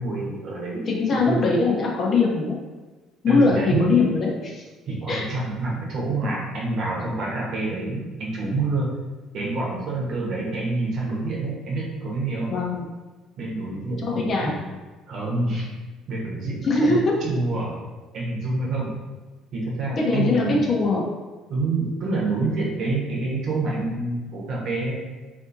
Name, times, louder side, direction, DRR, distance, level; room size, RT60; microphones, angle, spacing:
voice 1, 0.0-1.4 3.3-4.0 4.9-8.9 9.3-12.6 13.4-14.5 15.1-15.7 16.1-17.0 17.2-17.7 18.1-18.9 19.5-20.6 21.5-25.0, right 2 dB, 60° right, -4 dB, 0.9 m, -27 dB
voice 2, 0.9-2.6 3.2-4.6 5.1-5.2 12.5-12.9 14.0-14.5 16.6-17.1 20.0-21.0, left 3 dB, 45° left, -2 dB, 0.7 m, -21 dB
2.6 x 2.6 x 2.6 m, 1.2 s
hypercardioid pair, 60°, 0 cm